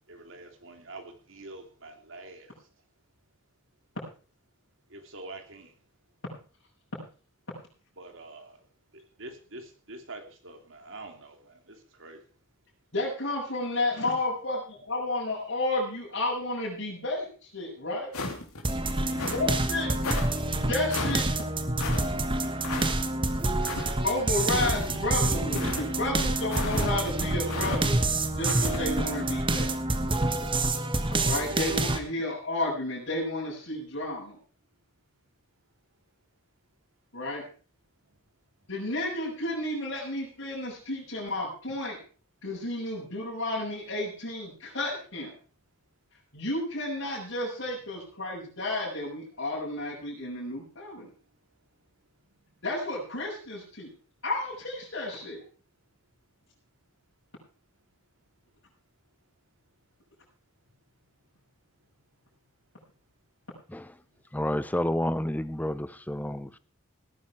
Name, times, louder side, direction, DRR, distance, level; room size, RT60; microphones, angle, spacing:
voice 1, 0.1-2.7 4.9-5.7 8.0-8.6 8.9-12.2 18.6-19.1, right 2 dB, 60° right, 5 dB, 3.0 m, -46 dB
voice 2, 12.9-18.1 19.3-20.0 20.4-21.3 24.0-28.0 28.4-29.7 31.2-34.4 37.1-37.5 38.7-42.0 42.4-45.3 46.3-51.1 52.6-53.9 54.2-55.4, left 2 dB, 60° left, -7 dB, 6.5 m, -32 dB
sound 1, 18.1-18.6 19.1-19.5 20.0-20.3 20.9-21.2 21.8-22.0 22.6-22.9 23.6-23.9 24.5-25.0 25.5-25.9 26.5-26.9 27.5-27.8 28.4-28.8, left 3 dB, 85° left, 3.3 m, -33 dB
sound 2, 18.6-32.0, right 2 dB, 20° right, 1.3 m, -27 dB
voice 3, 64.3-66.6, left 1 dB, 5° left, 15 dB, 0.6 m, -30 dB
18.0 x 9.9 x 4.8 m, 0.39 s
head